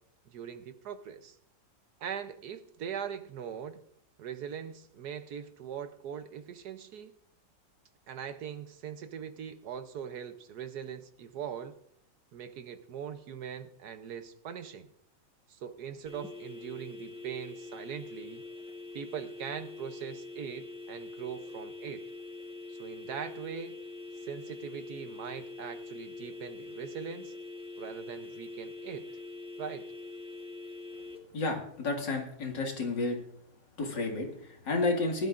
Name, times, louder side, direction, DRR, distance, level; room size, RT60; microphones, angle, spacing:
voice 1, 0.3-1.4 2.0-3.8 4.2-7.1 8.1-11.8 12.3-14.9 15.5-18.4 18.9-22.1 22.7-23.7 24.2-27.3 27.8-29.1 29.6-29.9, right 8 dB, 65° right, 10 dB, 1.2 m, -41 dB
sound 1, 16.1-31.2, left 3 dB, 5° right, 1.0 m, -44 dB
voice 2, 31.3-33.2 33.8-35.3, left 3 dB, 75° left, 2 dB, 2.7 m, -31 dB
19.5 x 12.0 x 2.5 m, 0.73 s
omnidirectional pair, 2.0 m